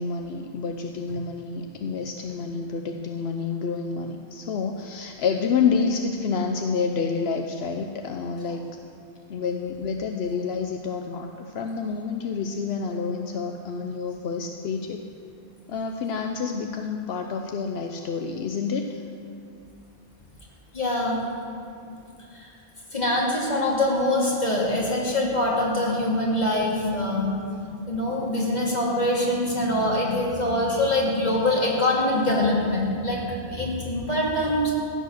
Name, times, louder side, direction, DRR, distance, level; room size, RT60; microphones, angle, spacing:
voice 1, 0.0-8.7 9.3-15.0 15.7-19.0, left 5 dB, 80° left, 4 dB, 0.9 m, -28 dB
voice 2, 20.7-21.2 22.9-27.4 27.9-34.7, left 1 dB, 45° left, -4 dB, 2.7 m, -24 dB
15.0 x 9.2 x 6.5 m, 2.5 s
omnidirectional pair, 1.0 m